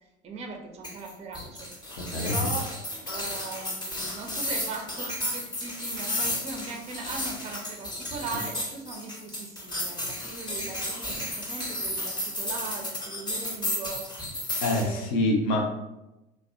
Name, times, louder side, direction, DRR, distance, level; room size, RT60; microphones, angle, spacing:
voice 1, 0.2-1.7 2.2-14.1 14.7-15.2, right 3 dB, 20° right, 2 dB, 0.4 m, -39 dB
sound 1, 0.8-14.8, left 1 dB, 15° left, 0.7 m, -33 dB
voice 2, 2.1-2.4 14.6-15.7, left 1 dB, 60° left, 2 dB, 0.6 m, -25 dB
2.6 x 2.0 x 2.4 m, 0.93 s
figure-of-eight pair, 65°, 31 cm